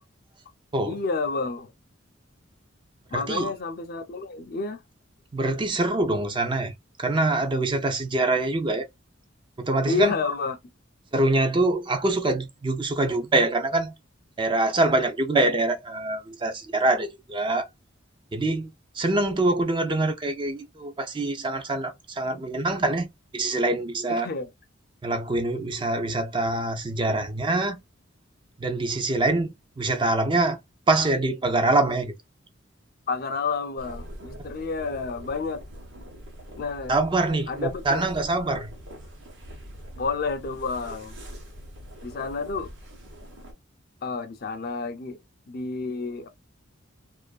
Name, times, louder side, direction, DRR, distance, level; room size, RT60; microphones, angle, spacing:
voice 1, 0.9-1.7 3.1-4.8 9.9-10.6 24.1-24.5 33.1-35.6 36.6-37.0 37.5-38.1 40.0-41.2 42.0-42.7 44.0-45.2 45.5-46.3, left 4 dB, 50° left, 0.4 m, -30 dB
voice 2, 3.1-3.5 5.3-6.7 7.0-8.9 9.6-10.2 11.1-13.9 14.4-17.7 18.3-24.3 25.0-27.8 28.6-30.6 30.9-32.1 36.9-38.7, right 2 dB, 25° right, 0.4 m, -24 dB
sound 1, 33.8-43.5, equal, 65° right, 0.9 m, -43 dB
2.5 x 2.4 x 2.2 m
head